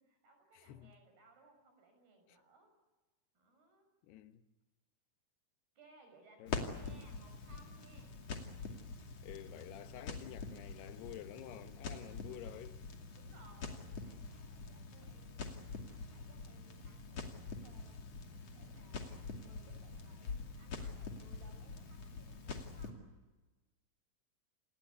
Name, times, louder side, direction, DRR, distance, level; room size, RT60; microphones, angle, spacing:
voice 1, 0.0-2.7 3.3-3.9 5.8-8.2 13.1-18.0 18.5-23.0, right 2 dB, 75° right, 8.4 m, -64 dB
voice 2, 0.5-0.9 2.3-2.4 4.0-4.5 6.4-6.7 9.2-12.9, left 12 dB, 85° left, 3.2 m, -50 dB
Crackle, 6.5-22.9, left 4 dB, 45° left, 3.2 m, -45 dB
28.0 x 20.5 x 8.4 m
omnidirectional pair, 4.6 m